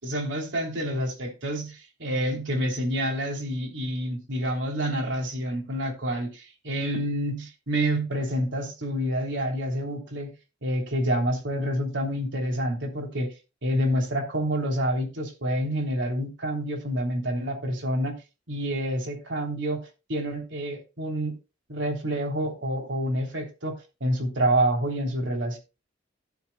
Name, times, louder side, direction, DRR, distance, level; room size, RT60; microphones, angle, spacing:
voice 1, 0.0-10.3 10.6-13.3 13.6-18.1 18.5-21.3 21.7-25.6, right 1 dB, 80° right, 3.3 m, -28 dB
17.0 x 7.1 x 2.2 m
head